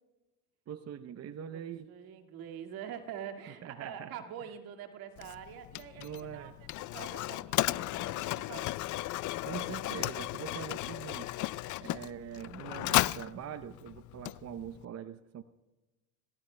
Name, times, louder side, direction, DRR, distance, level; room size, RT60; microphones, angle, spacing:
voice 1, 0.7-1.9 3.6-4.2 6.0-6.5 9.4-11.3 11.8-15.4, right 9 dB, 40° right, 11 dB, 0.7 m, -43 dB
voice 2, 1.5-8.7, right 9 dB, 65° right, 4 dB, 2.1 m, -45 dB
Mechanisms, 5.2-14.8, left 17 dB, 50° left, 0.5 m, -35 dB
27.0 x 18.5 x 2.2 m, 1.1 s
supercardioid pair, 85°, 38 cm